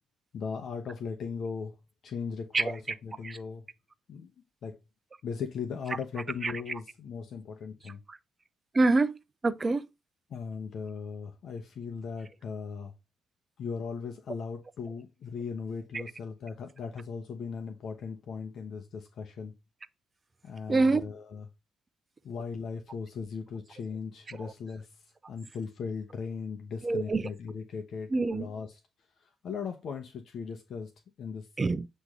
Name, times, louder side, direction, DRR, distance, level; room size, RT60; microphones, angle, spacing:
voice 1, 0.3-1.8 2.0-3.6 4.1-4.3 4.6-4.8 5.2-8.0 10.3-12.9 13.6-19.5 20.4-21.4 22.2-24.9 25.3-28.7 29.4-30.9 31.2-31.5, left 5 dB, 65° left, 1.0 m, -38 dB
voice 2, 2.5-3.0 3.2-3.4 5.9-6.8 7.8-8.2 8.7-9.2 9.4-9.9 15.9-16.0 20.7-21.1 24.3-24.5 26.8-27.3 28.1-28.5 31.6-31.9, right 3 dB, 30° right, 0.6 m, -27 dB
8.1 x 3.2 x 3.7 m
cardioid pair, 90°, 0 cm